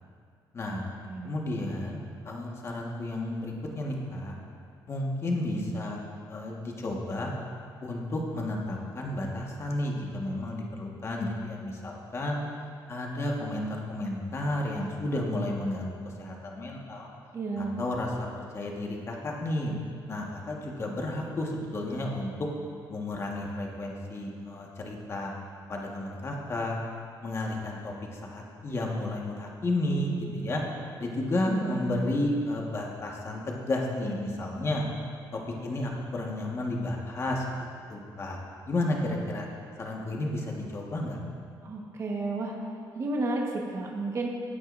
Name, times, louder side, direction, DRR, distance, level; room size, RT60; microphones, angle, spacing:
voice 1, 1.2-2.0 2.2-4.4 4.9-6.0 6.3-7.3 7.8-12.4 12.9-17.1 17.6-18.3 18.5-19.8 20.1-22.3 22.9-25.3 25.7-26.8 27.2-30.6 31.0-34.8 35.3-37.6 37.9-38.4 38.7-39.5 39.8-41.2, left 1 dB, 35° left, -1 dB, 1.6 m, -32 dB
voice 2, 17.3-17.8 31.5-32.1 41.6-42.5 42.9-44.3, right 2 dB, 35° right, -1 dB, 1.4 m, -32 dB
16.0 x 8.9 x 2.7 m, 2.3 s
cardioid pair, 120°, 8 cm